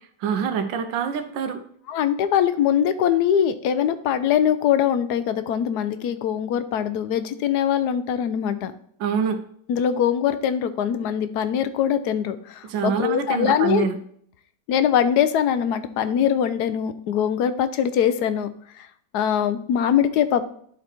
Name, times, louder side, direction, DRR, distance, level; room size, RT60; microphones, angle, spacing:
voice 1, 0.2-1.6 9.0-9.4 12.7-14.0, right 6 dB, 90° right, 7 dB, 1.4 m, -25 dB
voice 2, 1.9-8.7 9.7-13.9 14.7-18.5 18.8-18.9 19.1-20.4, left 9 dB, 70° left, 12 dB, 1.1 m, -22 dB
11.0 x 4.0 x 4.4 m, 0.63 s
omnidirectional pair, 1.9 m